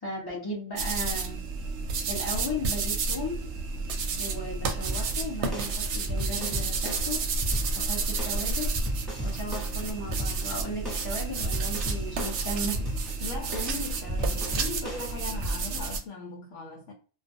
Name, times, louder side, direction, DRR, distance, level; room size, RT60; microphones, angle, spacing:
voice 1, 0.0-1.4 2.1-3.4 4.2-7.2 7.7-8.7 9.2-12.8, left 1 dB, 30° left, 0.4 m, -36 dB
sound 1, 0.8-16.0, right 4 dB, 70° right, 0.8 m, -31 dB
sound 2, 4.9-15.5, equal, ahead, 1.0 m, -35 dB
voice 2, 13.2-16.9, left 3 dB, 75° left, 0.9 m, -38 dB
2.4 x 2.1 x 2.5 m
omnidirectional pair, 1.4 m